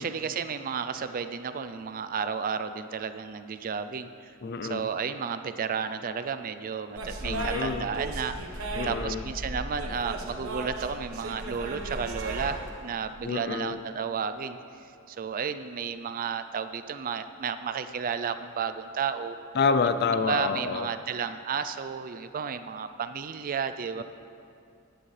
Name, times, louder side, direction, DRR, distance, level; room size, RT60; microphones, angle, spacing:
voice 1, 0.0-4.3 4.6-8.6 8.8-14.6 15.1-19.4 19.8-20.0 20.3-24.0, right 6 dB, 40° right, 10 dB, 0.4 m, -32 dB
voice 2, 4.4-4.9 7.2-7.9 8.8-9.2 13.2-13.8 19.5-20.9, left 5 dB, 50° left, 10 dB, 0.5 m, -28 dB
sound 1, 6.9-12.4, right 1 dB, 75° right, 1.2 m, -36 dB
sound 2, 9.2-14.6 15.8-15.9 16.2-16.3, right 3 dB, 60° right, 0.9 m, -46 dB
15.5 x 10.0 x 3.3 m, 2.5 s
head